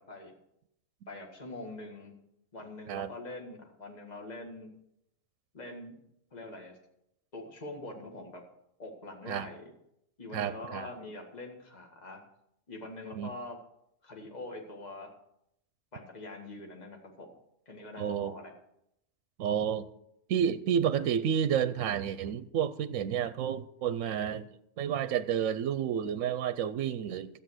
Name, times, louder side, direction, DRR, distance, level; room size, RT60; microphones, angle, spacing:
voice 1, 1.1-2.1 2.5-4.7 5.5-6.0 6.3-6.8 7.3-8.4 8.8-9.7 10.2-12.2 12.7-13.6 14.0-15.1 15.9-17.3 17.7-18.5, left 2 dB, 30° left, 2 dB, 1.9 m, -44 dB
voice 2, 10.3-10.9 13.2-13.3 18.0-18.3 19.4-19.9 20.3-24.5 24.8-27.4, right 8 dB, 75° right, 13 dB, 1.0 m, -30 dB
13.0 x 8.7 x 6.3 m, 0.78 s
omnidirectional pair, 1.4 m